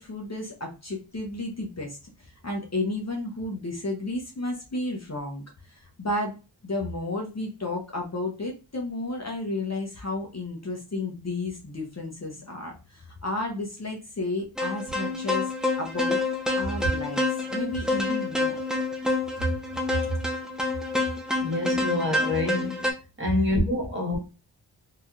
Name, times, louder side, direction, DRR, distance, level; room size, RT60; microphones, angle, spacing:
voice 1, 0.0-6.4 6.6-16.2 16.6-17.2 17.5-18.6, left 2 dB, 35° left, 0.8 m, -32 dB
sound 1, 14.6-22.9, left 2 dB, ahead, 0.6 m, -28 dB
voice 2, 21.4-22.9 23.2-24.2, left 1 dB, 25° right, 1.5 m, -26 dB
3.2 x 2.8 x 2.3 m
wide cardioid pair, 55°, 44 cm